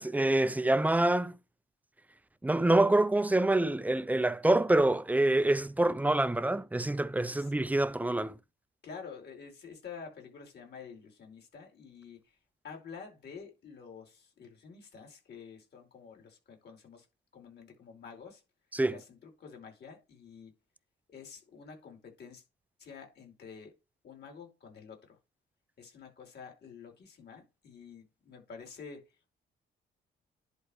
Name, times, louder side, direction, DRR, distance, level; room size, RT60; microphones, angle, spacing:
voice 1, 0.0-1.3 2.4-8.4 18.7-19.0, right 2 dB, 10° right, 0.6 m, -26 dB
voice 2, 8.8-12.2 12.6-17.1 17.3-18.4 18.9-20.5 21.1-22.4 22.8-23.7 24.0-25.2 25.8-29.1, left 6 dB, 55° left, 4.7 m, -49 dB
10.5 x 4.5 x 3.5 m
cardioid pair, 90°, 20 cm